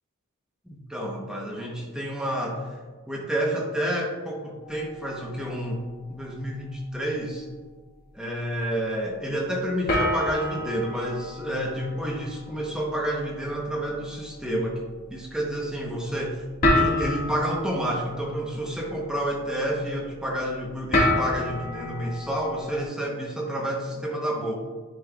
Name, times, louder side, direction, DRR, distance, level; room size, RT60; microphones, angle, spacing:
voice 1, 0.7-2.7 3.1-5.8 6.1-7.5 8.1-14.7 15.1-16.4 16.7-24.5, equal, 5° right, -2 dB, 0.9 m, -29 dB
sound 1, 4.6-6.2 6.5-6.9 7.5-7.6 9.9-22.8, left 1 dB, 45° left, 1.9 m, -30 dB
10.0 x 5.3 x 2.3 m, 1.4 s
head